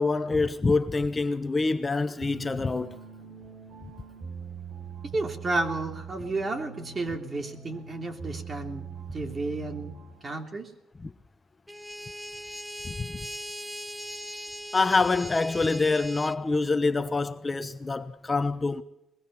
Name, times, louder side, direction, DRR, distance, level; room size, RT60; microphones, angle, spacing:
voice 1, 0.0-3.0 11.0-11.1 12.8-13.2 14.7-18.8, left 3 dB, 25° left, 1.0 m, -26 dB
sound 1, 2.2-10.3, right 6 dB, 70° right, 6.6 m, -42 dB
voice 2, 5.1-8.9 9.1-9.9 10.2-10.7, right 2 dB, 35° right, 3.3 m, -32 dB
sound 2, 11.7-16.4, equal, 5° right, 1.0 m, -39 dB
22.5 x 21.0 x 5.7 m
cardioid pair, 90°, 0 cm